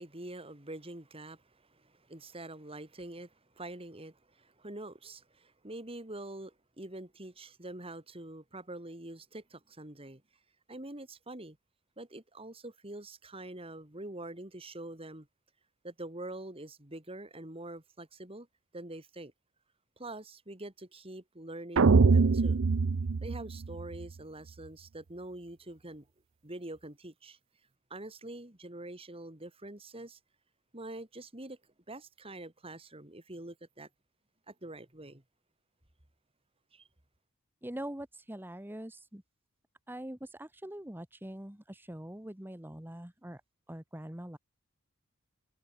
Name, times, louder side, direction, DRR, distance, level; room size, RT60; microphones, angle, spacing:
voice 1, 0.0-10.2 10.7-11.6 12.0-15.3 15.8-18.5 18.7-19.3 20.0-22.6 23.2-26.1 26.4-27.4 27.9-30.2 30.7-31.6 31.9-33.9 34.5-35.2 36.7-36.9, right 1 dB, 25° right, 2.7 m, -45 dB
sound 1, 21.8-24.0, right 4 dB, 60° right, 0.5 m, -24 dB
voice 2, 37.6-39.2 39.9-43.4 43.7-44.4, right 1 dB, 10° right, 1.3 m, -43 dB
head